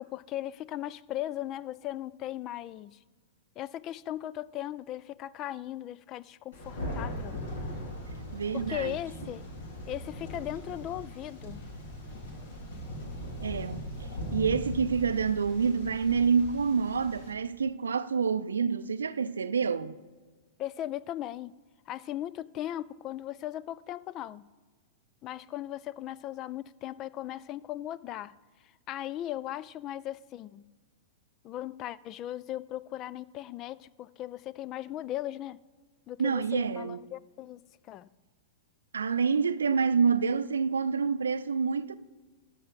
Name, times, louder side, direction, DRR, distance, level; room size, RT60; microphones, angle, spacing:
voice 1, 0.0-3.0 3.6-7.4 8.5-9.4 9.9-11.6 20.6-21.5 21.9-24.5 25.2-28.3 28.9-30.7 31.4-35.6 36.1-37.6 37.9-38.1, left 13 dB, 35° left, 0.3 m, -38 dB
Thunder, 6.5-17.3, left 1 dB, 65° left, 2.5 m, -40 dB
voice 2, 8.3-9.0 13.4-13.9 14.3-20.0 36.2-37.0 38.9-42.0, right 5 dB, 75° right, 0.5 m, -27 dB
13.0 x 7.5 x 4.0 m
figure-of-eight pair, 100°, 0 cm